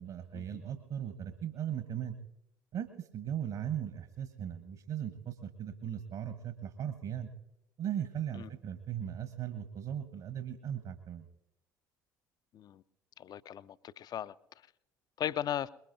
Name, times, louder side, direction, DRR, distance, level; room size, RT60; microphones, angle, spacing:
voice 1, 0.0-2.2 2.7-7.3 7.8-11.3, right 9 dB, 50° right, 1.3 m, -38 dB
voice 2, 13.2-14.3 15.2-15.7, left 10 dB, 40° left, 0.5 m, -37 dB
23.0 x 21.0 x 2.7 m
figure-of-eight pair, 60°, 11 cm